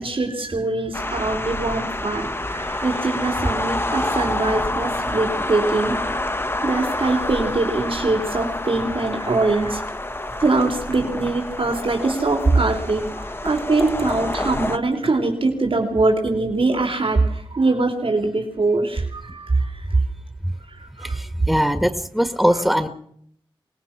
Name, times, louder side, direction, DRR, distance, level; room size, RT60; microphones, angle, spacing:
voice 1, 0.0-6.1 6.6-9.8 10.4-20.0 20.8-21.2, right 3 dB, 75° right, 3 dB, 3.5 m, -22 dB
sound 1, 0.9-14.8, left 1 dB, 25° left, 1.2 m, -27 dB
voice 2, 21.0-22.9, equal, ahead, 9 dB, 1.5 m, -21 dB
24.0 x 19.0 x 6.0 m, 0.67 s
cardioid pair, 40°, 9 cm